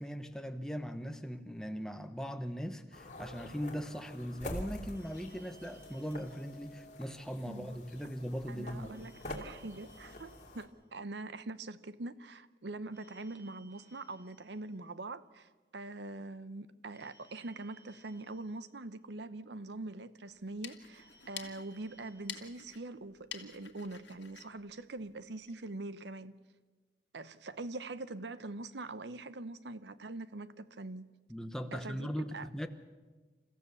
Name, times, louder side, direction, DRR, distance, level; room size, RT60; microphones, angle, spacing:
voice 1, 0.0-9.0 31.3-32.7, equal, 5° left, 1.0 m, -39 dB
sound 1, 2.9-10.7, left 1 dB, 40° left, 2.7 m, -47 dB
Telephone, 4.9-7.4 8.9-11.4 12.9-15.4 16.9-19.4 20.9-23.4, right 3 dB, 10° right, 4.6 m, -64 dB
voice 2, 7.5-7.8 8.5-26.3 27.1-31.1 31.7-32.5, right 2 dB, 80° right, 0.8 m, -43 dB
sound 2, 20.3-25.6, left 9 dB, 85° left, 1.7 m, -50 dB
28.5 x 15.0 x 7.0 m
head